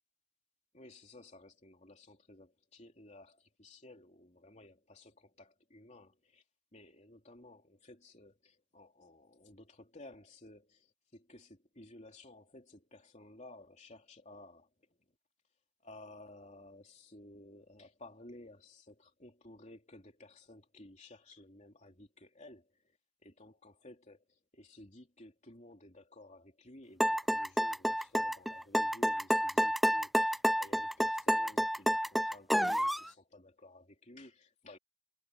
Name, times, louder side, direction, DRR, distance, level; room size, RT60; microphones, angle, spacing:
voice 1, 0.7-6.4 6.7-14.9 15.8-23.0 23.2-34.8, left 1 dB, 35° left, 3.3 m, -55 dB
sound 1, 27.0-33.1, equal, ahead, 0.3 m, -29 dB
head